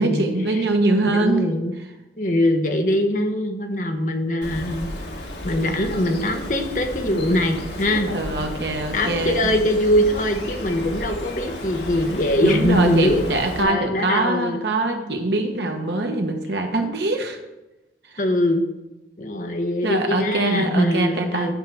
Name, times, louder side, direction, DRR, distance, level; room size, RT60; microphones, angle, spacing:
voice 1, 0.0-1.5 7.1-7.2 7.9-9.5 12.4-17.4 19.8-21.5, right 2 dB, 75° right, 3 dB, 1.3 m, -23 dB
voice 2, 1.0-1.7 2.2-8.1 8.9-13.2 13.6-14.6 18.2-18.6 19.2-21.5, left 1 dB, 45° left, 5 dB, 1.0 m, -22 dB
Bird, 4.4-13.6, left 1 dB, 75° left, 1.6 m, -33 dB
10.0 x 4.7 x 6.3 m, 1.0 s
head